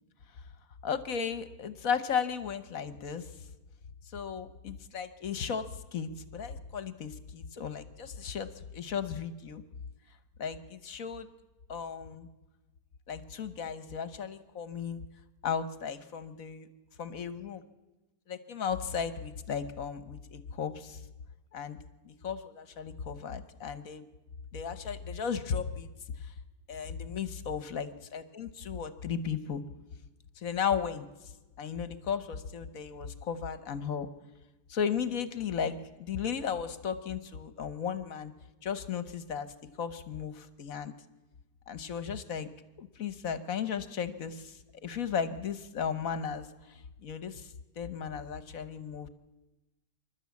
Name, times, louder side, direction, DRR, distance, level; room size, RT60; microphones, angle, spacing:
voice 1, 0.8-3.3 4.1-5.6 5.9-9.6 10.4-11.3 11.7-12.3 13.1-15.0 15.4-16.7 17.0-17.6 18.3-21.0 21.5-21.8 22.0-24.0 24.5-25.9 26.2-26.3 26.7-29.6 30.4-31.0 31.6-34.1 34.7-38.3 38.6-39.5 39.8-40.9 41.7-42.5 42.8-49.1, left 7 dB, 55° left, 13 dB, 1.3 m, -35 dB
26.5 x 12.0 x 8.4 m, 1.1 s
omnidirectional pair, 1.9 m